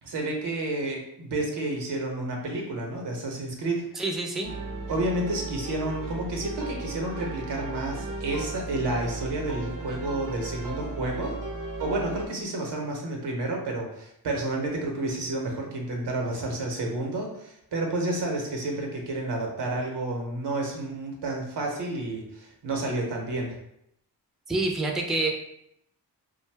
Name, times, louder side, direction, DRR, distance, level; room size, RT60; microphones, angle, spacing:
voice 1, 0.0-3.9 4.9-11.4 11.8-23.5, right 2 dB, 75° right, 0 dB, 0.9 m, -30 dB
voice 2, 3.9-4.5 24.5-25.3, right 2 dB, ahead, 1 dB, 0.5 m, -27 dB
sound 1, 4.4-12.3, right 3 dB, 50° right, 0.6 m, -35 dB
2.6 x 2.2 x 3.3 m, 0.77 s
cardioid pair, 45°, 42 cm